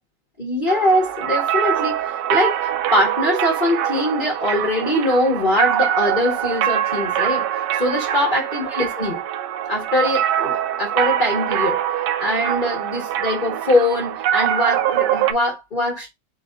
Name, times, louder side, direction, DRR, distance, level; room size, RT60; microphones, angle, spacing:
voice 1, 0.4-7.5 7.7-9.2 9.7-11.8 12.2-16.1, left 1 dB, 30° left, 1.2 m, -22 dB
sound 1, 0.7-15.3, right 10 dB, 75° right, 1.2 m, -23 dB
4.5 x 2.9 x 3.8 m
omnidirectional pair, 2.1 m